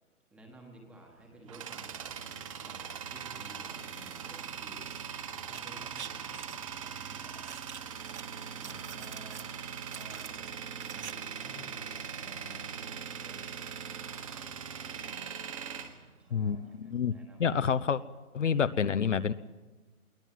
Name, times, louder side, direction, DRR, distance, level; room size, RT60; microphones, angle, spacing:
voice 1, 0.3-5.0 5.3-7.5 8.5-9.5 9.9-10.5 10.8-14.1 14.3-14.5 16.2-17.6, right 1 dB, 5° right, 1 dB, 1.4 m, -54 dB
Tools, 1.0-16.8, right 7 dB, 25° right, 1.5 m, -41 dB
sound 1, 5.4-6.6 7.4-8.2 8.5-9.5 9.9-11.1 11.4-11.5, right 7 dB, 50° right, 0.7 m, -46 dB
voice 2, 16.3-17.1 17.4-18.0 18.3-19.3, left 7 dB, 55° left, 12 dB, 0.9 m, -28 dB
22.5 x 17.5 x 9.2 m, 1.2 s
hypercardioid pair, 165°, 43 cm